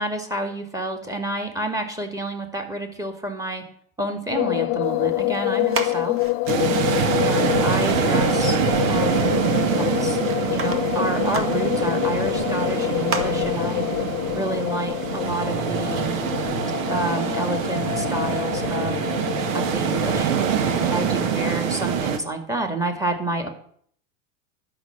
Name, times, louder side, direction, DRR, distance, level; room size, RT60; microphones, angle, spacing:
voice 1, 0.0-3.6 4.0-6.2 7.2-8.6 8.9-9.3 9.7-10.2 10.5-13.9 14.3-16.1 16.9-19.0 19.5-20.3 20.8-23.5, right 2 dB, 10° right, 5 dB, 2.2 m, -29 dB
sound 1, 4.3-21.6, left 18 dB, 35° left, 0.5 m, -26 dB
sound 2, 4.8-16.4, right 4 dB, 30° right, 1.8 m, -38 dB
sound 3, 6.5-22.2, right 8 dB, 75° right, 1.5 m, -25 dB
11.5 x 5.9 x 8.2 m, 0.62 s
supercardioid pair, 120°, 40 cm